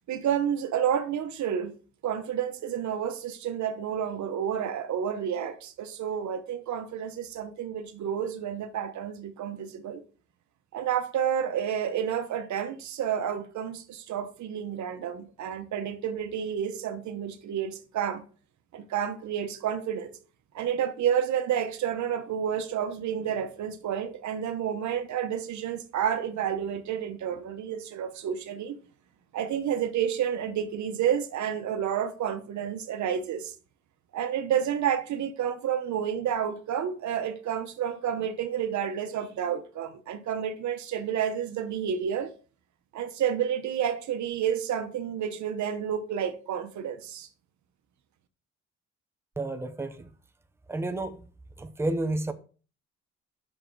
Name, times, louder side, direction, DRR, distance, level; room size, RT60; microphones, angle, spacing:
voice 1, 0.1-1.8 2.0-10.0 10.7-18.3 18.7-20.1 20.5-28.8 29.3-33.5 34.1-42.3 42.9-47.3, right 9 dB, 70° right, 1.1 m, -30 dB
voice 2, 49.4-50.1 50.7-51.2 51.6-52.3, right 2 dB, 10° right, 0.8 m, -30 dB
7.6 x 6.4 x 4.7 m
cardioid pair, 90°, 30 cm